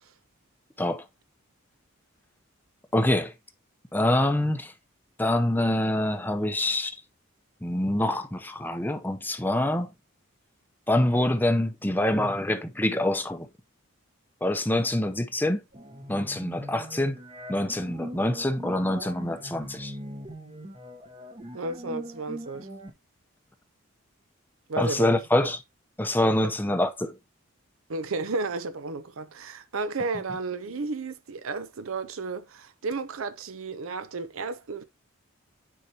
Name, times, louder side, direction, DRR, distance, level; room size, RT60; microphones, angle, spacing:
voice 1, 2.9-3.3 3.9-4.7 5.2-7.0 7.6-9.9 10.9-13.5 14.4-15.6 16.1-17.2 17.5-20.0 24.8-25.6 26.0-27.2, left 1 dB, 10° left, 0.6 m, -25 dB
sound 1, 15.7-22.9, equal, 30° right, 0.9 m, -41 dB
voice 2, 21.5-22.7 24.7-25.2 27.9-34.8, right 3 dB, 75° right, 0.6 m, -33 dB
9.6 x 4.7 x 2.8 m
head